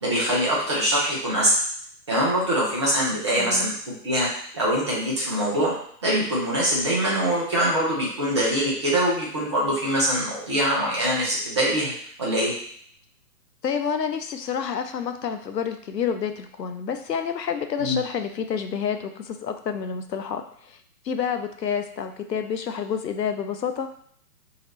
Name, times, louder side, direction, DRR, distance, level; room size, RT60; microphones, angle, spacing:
voice 1, 0.0-1.6 2.1-4.3 4.5-5.7 6.0-11.9 12.2-12.5 17.8-18.0, equal, 20° right, -6 dB, 0.6 m, -23 dB
voice 2, 3.4-3.7 13.6-20.8 21.0-23.9, left 7 dB, 75° left, 7 dB, 0.6 m, -29 dB
3.0 x 2.8 x 4.2 m, 0.62 s
figure-of-eight pair, 130°, 50 cm